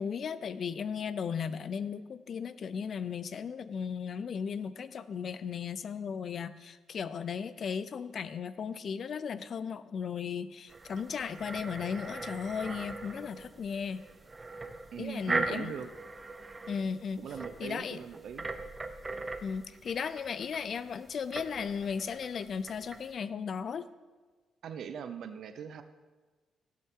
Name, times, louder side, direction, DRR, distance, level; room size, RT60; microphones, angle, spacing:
voice 1, 0.0-14.0 15.0-15.7 16.7-17.2 17.6-18.0 19.4-23.9, left 6 dB, 40° left, 14 dB, 0.4 m, -36 dB
sound 1, 10.7-23.1, right 3 dB, 15° right, 0.6 m, -40 dB
voice 2, 14.9-15.9 17.2-18.5 24.6-25.8, right 7 dB, 55° right, 10 dB, 0.6 m, -40 dB
16.5 x 8.4 x 3.7 m, 1.3 s
cardioid pair, 180°, 0 cm